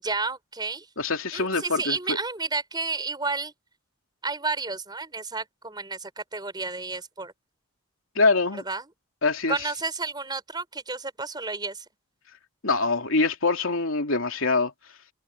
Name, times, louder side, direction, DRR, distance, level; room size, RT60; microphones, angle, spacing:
voice 1, 0.0-0.9 1.3-3.5 4.2-7.3 8.5-8.9 9.5-11.8, right 4 dB, 20° right, 4.9 m, -31 dB
voice 2, 1.0-2.2 8.1-8.6 9.2-9.6 12.6-14.7, left 3 dB, 75° left, 2.9 m, -24 dB
head